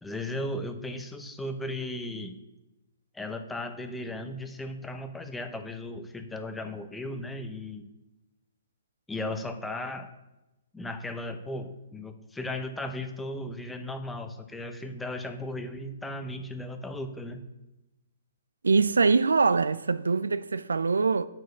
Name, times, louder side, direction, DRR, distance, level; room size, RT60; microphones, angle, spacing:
voice 1, 0.0-2.3 3.1-7.9 9.1-10.1 10.7-17.4, left 1 dB, 5° left, 0.7 m, -36 dB
voice 2, 18.6-21.3, right 4 dB, 75° right, 0.3 m, -23 dB
6.0 x 4.8 x 6.7 m
figure-of-eight pair, 120°, 0 cm